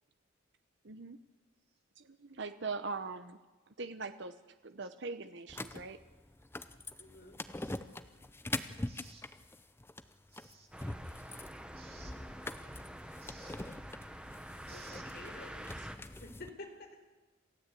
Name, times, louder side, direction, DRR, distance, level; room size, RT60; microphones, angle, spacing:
voice 1, 0.8-1.2 2.0-3.4 3.7-6.0, right 4 dB, 60° right, 10 dB, 0.8 m, -42 dB
sound 1, 5.5-16.5, left 2 dB, 10° left, 0.6 m, -44 dB
voice 2, 7.0-7.7 14.7-17.0, left 2 dB, 50° left, 3 dB, 4.2 m, -51 dB
voice 3, 8.9-9.2 10.3-10.7 11.7-12.1 13.2-13.6 14.5-15.2, right 4 dB, 30° right, 2 dB, 2.8 m, -57 dB
sound 2, 10.7-16.0, right 1 dB, 5° right, 1.1 m, -48 dB
27.5 x 15.5 x 8.4 m, 1.2 s
head